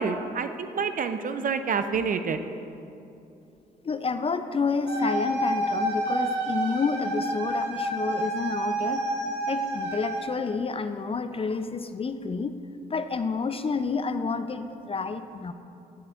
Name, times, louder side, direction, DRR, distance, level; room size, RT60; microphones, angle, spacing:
voice 1, 0.0-2.4, right 5 dB, 45° right, 9 dB, 0.6 m, -28 dB
voice 2, 3.8-9.0 9.5-12.5 12.9-15.5, left 4 dB, 30° left, 10 dB, 0.5 m, -29 dB
sound 1, 4.9-10.2, right 1 dB, 65° right, 1.7 m, -29 dB
11.5 x 10.5 x 2.5 m, 2.7 s
hypercardioid pair, 45°, 20 cm